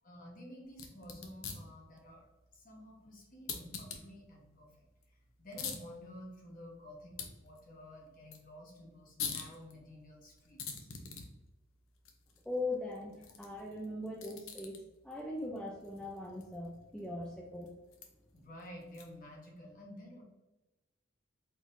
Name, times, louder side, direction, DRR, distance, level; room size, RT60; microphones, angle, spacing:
voice 1, 0.0-4.7 5.1-10.9 18.3-20.2, equal, 40° left, -1 dB, 1.2 m, -51 dB
sound 1, 0.7-19.4, left 6 dB, 80° left, 0.7 m, -48 dB
voice 2, 12.5-17.7, left 2 dB, 5° left, -3 dB, 0.5 m, -40 dB
4.6 x 4.0 x 2.7 m, 1.0 s
head